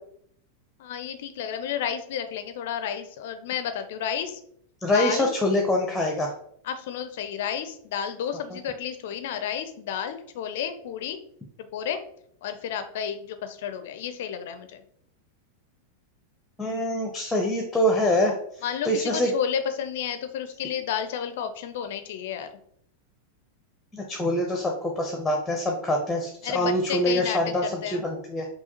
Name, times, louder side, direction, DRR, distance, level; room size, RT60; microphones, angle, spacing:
voice 1, 0.8-4.4 4.9-5.3 6.6-11.2 11.6-12.0 12.4-14.8 18.6-22.5 26.4-28.1, left 8 dB, 55° left, 9 dB, 0.4 m, -31 dB
voice 2, 4.8-6.3 8.5-8.6 16.6-18.3 18.8-19.3 23.9-28.5, left 1 dB, 5° left, 1 dB, 0.6 m, -25 dB
5.6 x 2.3 x 2.9 m, 0.66 s
figure-of-eight pair, 90°, 0 cm